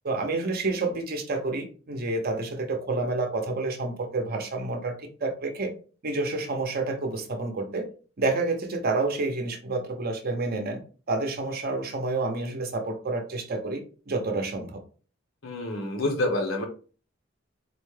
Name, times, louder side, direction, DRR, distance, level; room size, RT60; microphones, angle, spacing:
voice 1, 0.0-5.7 6.0-7.9 8.2-10.8 11.1-14.8, right 3 dB, 50° right, 4 dB, 0.7 m, -29 dB
voice 2, 15.4-16.6, left 1 dB, 90° left, 2 dB, 1.0 m, -27 dB
4.1 x 2.2 x 3.2 m, 0.38 s
head